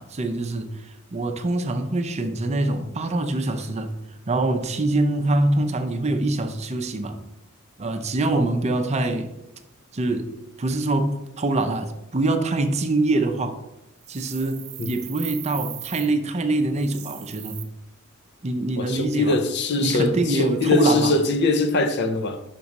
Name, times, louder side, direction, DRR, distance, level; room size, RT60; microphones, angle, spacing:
voice 1, 0.0-3.9 4.3-7.2 7.8-9.3 9.9-10.3 10.6-13.6 14.1-17.6 18.4-19.4 19.8-21.1, right 2 dB, 30° right, 0.5 m, -24 dB
sound 1, 14.0-16.1 16.8-17.6, right 13 dB, 85° right, 0.7 m, -38 dB
voice 2, 18.8-22.4, left 2 dB, 55° left, 0.6 m, -22 dB
5.9 x 4.8 x 4.1 m
head